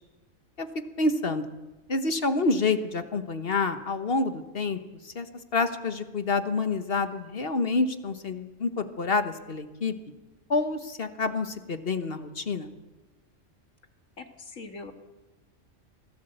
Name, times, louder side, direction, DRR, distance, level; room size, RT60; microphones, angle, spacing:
voice 1, 1.0-1.5 1.9-5.3 5.5-9.9 10.5-12.7, left 3 dB, 50° left, 9 dB, 1.4 m, -28 dB
voice 2, 14.2-14.9, left 3 dB, 85° left, 6 dB, 2.3 m, -42 dB
24.0 x 16.0 x 7.9 m, 1.2 s
omnidirectional pair, 1.3 m